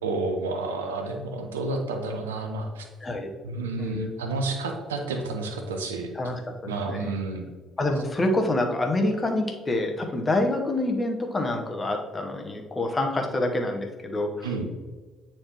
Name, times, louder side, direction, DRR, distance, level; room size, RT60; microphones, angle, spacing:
voice 1, 0.0-2.9 3.4-6.1 6.7-7.4 14.4-14.7, right 3 dB, 80° right, 4 dB, 0.6 m, -30 dB
voice 2, 3.0-3.3 3.8-4.0 6.1-7.1 7.8-14.5, left 2 dB, 25° left, 3 dB, 1.0 m, -27 dB
8.6 x 4.4 x 3.0 m, 1.4 s
figure-of-eight pair, 50°, 0 cm